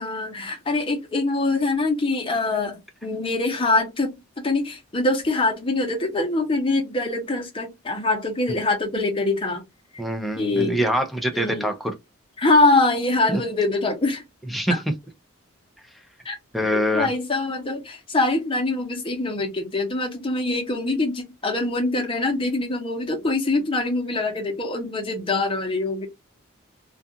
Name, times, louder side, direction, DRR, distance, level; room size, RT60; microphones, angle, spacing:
voice 1, 0.0-4.1 4.4-9.6 10.4-10.8 11.3-11.7 12.4-14.2 16.2-16.4 16.7-26.1, left 2 dB, 25° left, 0.7 m, -24 dB
voice 2, 10.0-11.9 13.3-13.4 14.5-14.9 16.5-17.1, equal, ahead, 0.4 m, -24 dB
2.4 x 2.4 x 2.6 m
head